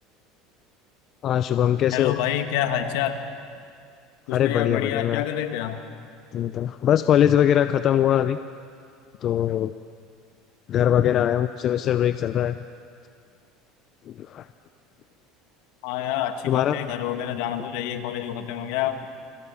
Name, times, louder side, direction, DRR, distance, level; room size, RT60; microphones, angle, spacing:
voice 1, 1.2-2.2 4.3-5.2 6.3-8.4 9.2-9.7 10.7-12.6 14.1-14.5 16.5-16.8, left 10 dB, 45° left, 11 dB, 0.7 m, -21 dB
voice 2, 1.9-3.2 4.3-5.8 15.8-19.0, left 10 dB, 75° left, 7 dB, 2.1 m, -27 dB
27.0 x 25.5 x 7.2 m, 2.3 s
supercardioid pair, 100°, 0 cm